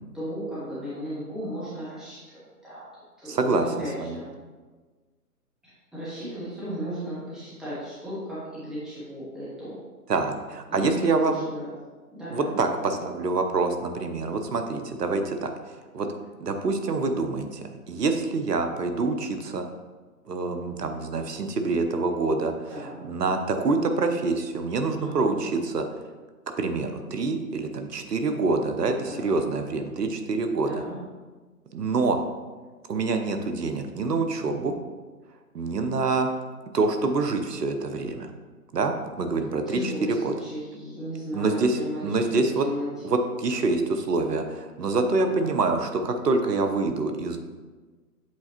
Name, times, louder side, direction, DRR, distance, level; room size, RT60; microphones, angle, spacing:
voice 1, 0.1-2.8 3.2-4.3 5.6-9.8 10.7-11.7 12.1-12.9 22.7-23.0 25.0-25.4 29.1-29.3 30.6-31.0 39.7-42.9 45.3-45.5, equal, ahead, -12 dB, 0.9 m, -35 dB
voice 2, 3.3-3.6 4.0-4.2 10.1-11.4 12.3-15.5 15.9-16.1 16.4-17.6 17.9-19.6 20.3-22.5 23.0-25.8 26.6-30.7 31.7-32.2 32.9-34.8 35.5-36.3 36.7-38.3 38.7-40.3 41.3-42.7 43.0-47.4, right 3 dB, 80° right, 7 dB, 0.8 m, -26 dB
7.7 x 4.2 x 2.9 m, 1.3 s
figure-of-eight pair, 145°, 48 cm